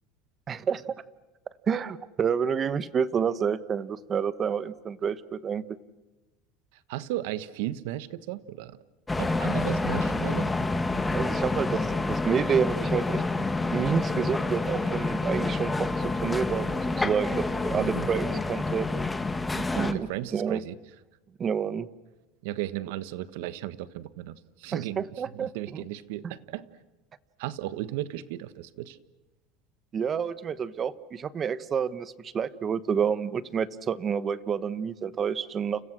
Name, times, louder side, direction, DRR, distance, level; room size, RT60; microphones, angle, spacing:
voice 1, 0.5-1.0 1.7-5.6 11.1-13.2 13.6-18.9 19.5-20.6 21.4-21.9 24.7-25.8 29.9-35.8, right 7 dB, 25° right, 16 dB, 1.1 m, -29 dB
voice 2, 6.9-8.8 9.2-10.5 17.7-18.1 19.7-20.8 22.4-25.0 25.3-26.7 27.4-29.0, right 14 dB, 75° right, 15 dB, 1.4 m, -35 dB
sound 1, 9.1-19.9, left 2 dB, 10° left, 1.5 m, -28 dB
30.0 x 30.0 x 6.3 m, 1.1 s
supercardioid pair, 145°, 0 cm